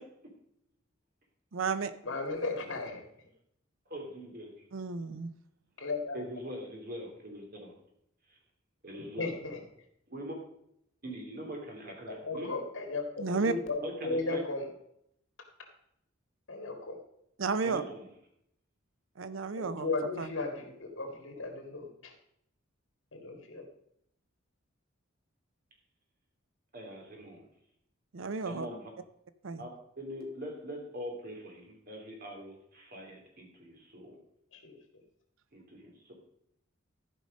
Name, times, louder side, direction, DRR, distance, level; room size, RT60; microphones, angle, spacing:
voice 1, 1.5-1.9 4.7-5.3 13.2-13.5 17.4-17.8 19.2-19.9 20.2-20.3 28.1-28.7 29.4-29.7, right 4 dB, 75° right, 13 dB, 0.6 m, -32 dB
voice 2, 2.0-3.0 5.8-6.2 9.2-9.6 12.1-14.7 16.5-17.0 19.6-22.1 23.1-23.6 34.5-34.8, left 3 dB, 75° left, 3 dB, 2.2 m, -35 dB
voice 3, 3.9-4.5 6.1-7.7 8.3-8.4 8.8-9.3 10.1-10.3 11.0-12.5 13.8-14.4 17.6-18.1 26.7-27.5 28.4-28.9 29.6-29.7 30.0-34.2 35.5-36.1, equal, 50° right, 1 dB, 2.8 m, -42 dB
13.5 x 5.4 x 5.2 m, 0.74 s
head